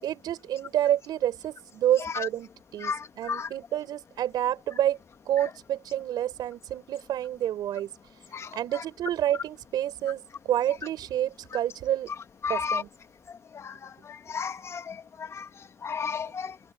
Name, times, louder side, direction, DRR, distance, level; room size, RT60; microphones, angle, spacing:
voice 1, 0.0-5.0 5.2-7.9 8.5-12.1 12.5-12.9, right 12 dB, 70° right, 6.7 m, -28 dB
voice 2, 12.4-12.8 13.6-13.7 14.3-14.9 15.3-15.4 15.8-16.5, left 6 dB, 40° left, 1.4 m, -31 dB
cardioid pair, 110°, 7 cm